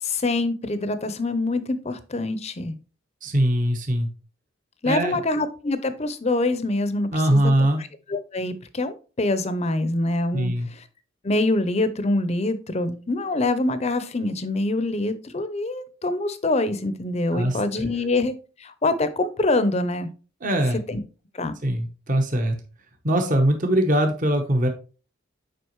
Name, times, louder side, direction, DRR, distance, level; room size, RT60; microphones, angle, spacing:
voice 1, 0.0-2.8 4.8-7.5 8.1-10.8 11.2-20.1 20.9-21.0 21.3-21.5, left 2 dB, 30° left, 12 dB, 0.6 m, -25 dB
voice 2, 3.2-4.1 4.8-5.2 7.1-7.8 10.3-10.7 17.3-17.9 20.4-20.8 21.6-22.6 23.0-24.7, right 1 dB, 40° right, 4 dB, 0.9 m, -22 dB
7.8 x 5.1 x 3.0 m, 0.36 s
head